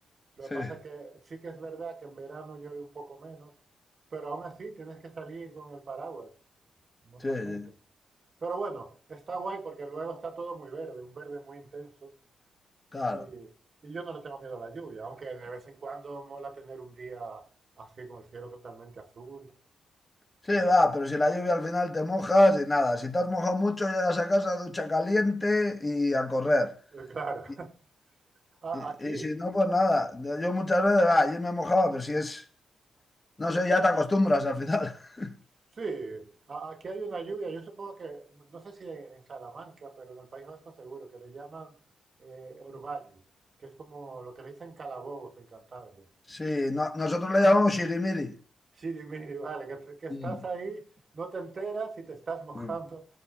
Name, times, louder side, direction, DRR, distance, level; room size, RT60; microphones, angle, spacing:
voice 1, 0.4-3.5 4.1-6.3 7.1-7.7 8.4-12.1 13.1-13.5 13.8-17.4 17.8-19.5 20.4-20.8 26.9-27.8 28.6-29.4 35.7-41.7 42.2-43.2 43.6-46.1 48.8-53.1, right 4 dB, 45° right, 2.8 m, -40 dB
voice 2, 7.2-7.7 12.9-13.3 20.5-26.7 29.0-32.4 33.4-35.4 46.3-48.4 50.1-50.4, left 1 dB, 20° left, 2.5 m, -25 dB
18.5 x 7.8 x 4.3 m
cardioid pair, 95°, 0 cm